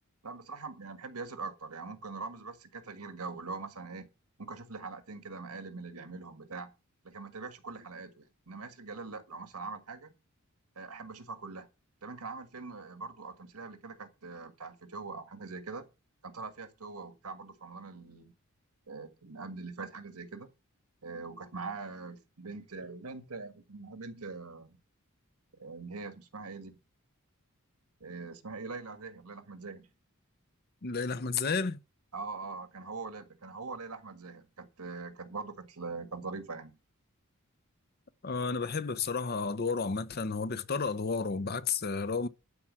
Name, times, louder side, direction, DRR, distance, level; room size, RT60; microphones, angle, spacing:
voice 1, 0.2-4.1 4.4-6.7 7.0-10.1 10.7-11.7 12.0-15.8 16.2-18.3 18.9-20.5 21.0-24.8 25.6-26.8 28.0-29.9 32.1-36.8, right 4 dB, 85° right, 1.7 m, -42 dB
voice 2, 30.8-31.8 38.2-42.3, left 4 dB, 45° left, 0.7 m, -32 dB
11.5 x 4.8 x 7.5 m
head